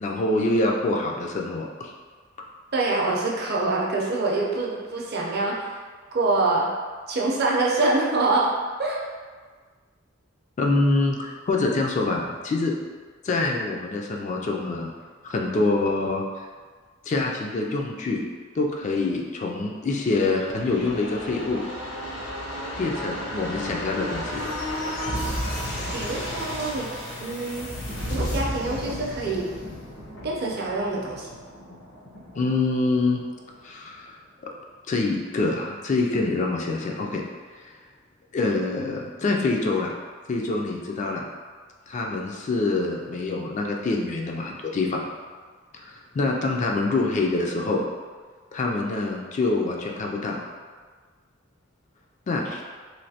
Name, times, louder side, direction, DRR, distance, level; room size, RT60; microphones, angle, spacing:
voice 1, 0.0-1.9 10.6-12.7 13.2-14.9 15.2-16.2 17.1-18.2 18.6-21.6 22.8-24.6 32.3-33.2 33.6-34.1 34.9-37.2 38.3-39.9 40.3-41.2 41.9-45.0 45.7-47.8 48.5-50.4 52.3-52.6, left 3 dB, 35° left, 0 dB, 0.3 m, -25 dB
voice 2, 2.7-5.8 6.1-6.7 7.1-8.5 8.8-9.0 25.9-26.9 27.2-27.7 28.0-29.5 30.2-31.3, right 2 dB, 50° right, -3 dB, 0.5 m, -25 dB
sound 1, 20.1-33.6 33.9-34.0, equal, 65° left, 0.8 m, -33 dB
3.2 x 2.6 x 2.7 m, 1.5 s
head